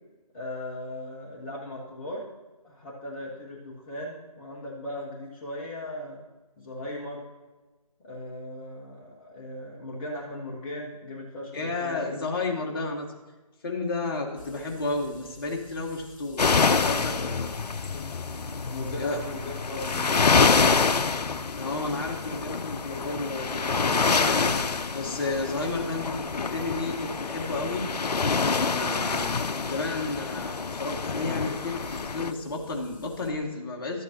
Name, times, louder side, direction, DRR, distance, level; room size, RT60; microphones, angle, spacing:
voice 1, 0.3-2.3 2.6-6.2 6.6-7.2 8.0-12.3 17.1-17.3 17.6-18.2 18.7-20.9, left 1 dB, 15° left, -4 dB, 0.9 m, -38 dB
voice 2, 11.5-13.1 13.6-17.2 19.0-19.2 21.5-24.6 24.9-27.9 28.4-29.3 29.7-34.0, left 3 dB, 35° left, 0 dB, 1.4 m, -32 dB
sound 1, 14.4-33.3, left 4 dB, 55° left, 1.0 m, -51 dB
sound 2, 16.4-32.3, left 4 dB, 90° left, 0.5 m, -26 dB
13.0 x 8.2 x 2.9 m, 1.2 s
figure-of-eight pair, 155°, 20 cm